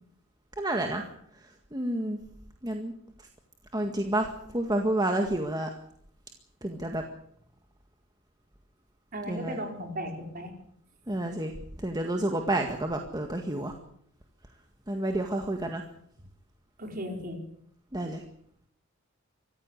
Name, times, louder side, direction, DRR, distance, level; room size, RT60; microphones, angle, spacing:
voice 1, 0.6-1.0 1.7-2.2 2.6-2.9 3.7-4.3 4.5-5.7 6.6-7.0 9.3-9.6 11.1-11.5 11.8-13.7 14.9-15.8 17.9-18.2, right 1 dB, 20° right, 3 dB, 1.8 m, -29 dB
voice 2, 9.1-10.5 16.8-17.4, equal, 45° right, 3 dB, 4.9 m, -36 dB
24.5 x 15.0 x 8.1 m, 0.67 s
head